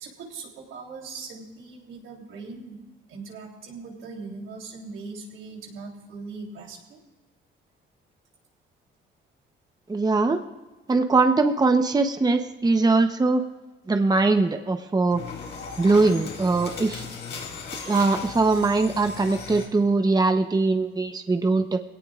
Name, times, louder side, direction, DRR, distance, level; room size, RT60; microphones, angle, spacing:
voice 1, 0.0-2.8 3.1-7.0, right 4 dB, 85° right, -1 dB, 3.6 m, -40 dB
voice 2, 9.9-10.4 10.9-13.4 13.9-15.2 15.8-17.1 17.9-21.8, right 3 dB, 20° right, 7 dB, 0.9 m, -21 dB
sound 1, 15.1-19.7, left 4 dB, 65° left, 4.1 m, -37 dB
21.5 x 17.5 x 2.5 m, 1.2 s
cardioid pair, 90°, 20 cm